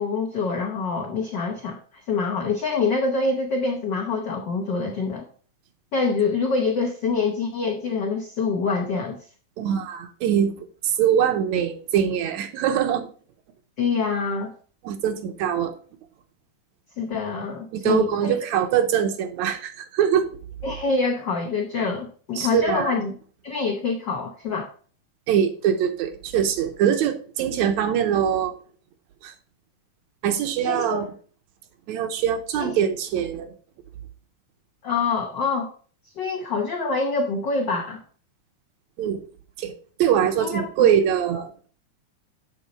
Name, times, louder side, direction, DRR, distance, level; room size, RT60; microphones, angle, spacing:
voice 1, 0.0-1.8 2.1-5.3 5.9-9.2 13.8-14.5 17.0-18.4 20.6-23.1 23.4-24.7 30.6-31.1 32.6-32.7 34.8-35.7 36.2-38.0 40.4-40.9, left 4 dB, 75° left, 1 dB, 1.0 m, -25 dB
voice 2, 9.6-13.1 14.8-15.7 17.7-20.3 22.4-22.9 25.3-28.5 29.2-29.3 30.2-31.1 31.9-33.5 39.0-39.2 39.6-39.7 40.0-41.5, right 9 dB, 75° right, 7 dB, 2.0 m, -23 dB
8.2 x 4.0 x 5.3 m, 0.43 s
omnidirectional pair, 3.5 m